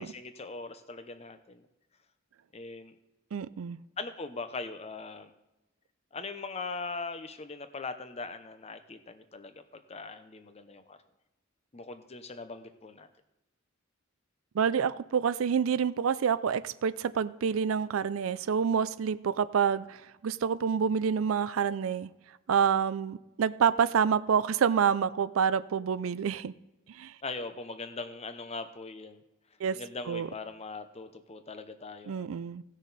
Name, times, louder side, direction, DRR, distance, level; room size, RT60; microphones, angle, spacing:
voice 1, 0.0-1.7 2.5-2.9 4.0-5.3 6.1-11.0 11.7-13.1 27.2-29.2 29.7-32.4, left 3 dB, 30° left, 10 dB, 0.8 m, -40 dB
voice 2, 3.3-3.8 14.5-22.1 22.5-26.5 26.9-27.1 29.6-29.8 30.1-30.3 32.1-32.6, right 7 dB, 85° right, 16 dB, 0.4 m, -27 dB
16.5 x 6.3 x 4.1 m, 0.98 s
head